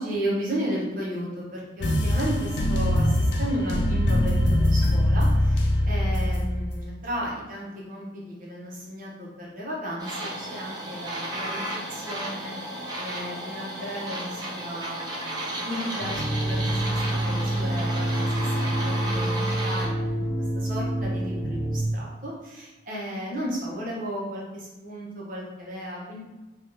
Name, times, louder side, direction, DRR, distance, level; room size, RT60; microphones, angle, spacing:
voice 1, 0.0-20.2 20.5-26.2, equal, 45° right, -5 dB, 0.8 m, -34 dB
sound 1, 1.8-6.8, left 1 dB, 65° left, 0.4 m, -22 dB
sound 2, 10.0-19.9, right 1 dB, 20° right, 0.4 m, -33 dB
sound 3, 16.0-21.8, right 1 dB, 50° left, 0.8 m, -27 dB
3.3 x 2.3 x 2.6 m, 1.1 s
head